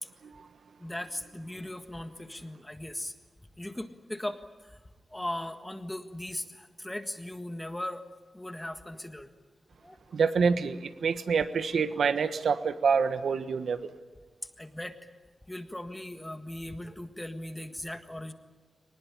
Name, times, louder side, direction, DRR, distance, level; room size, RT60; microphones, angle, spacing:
voice 1, 0.8-3.1 3.6-4.8 5.1-8.0 8.3-9.3 9.8-10.0 11.9-12.0 14.4-15.0 15.5-18.3, left 1 dB, 10° left, 8 dB, 1.7 m, -38 dB
voice 2, 10.1-13.9, right 5 dB, 80° right, 11 dB, 1.3 m, -27 dB
23.0 x 20.0 x 10.0 m, 1.3 s
wide cardioid pair, 115°, 0 cm